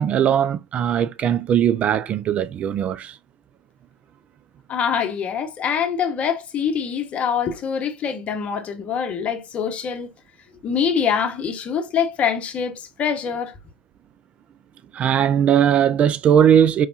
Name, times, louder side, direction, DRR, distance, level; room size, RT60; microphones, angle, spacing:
voice 1, 0.0-3.2 14.9-16.9, right 9 dB, 35° right, 0.3 m, -19 dB
voice 2, 4.7-10.1 10.6-13.5, left 7 dB, 35° left, 1.0 m, -24 dB
4.8 x 3.3 x 2.8 m
hypercardioid pair, 85°, 4 cm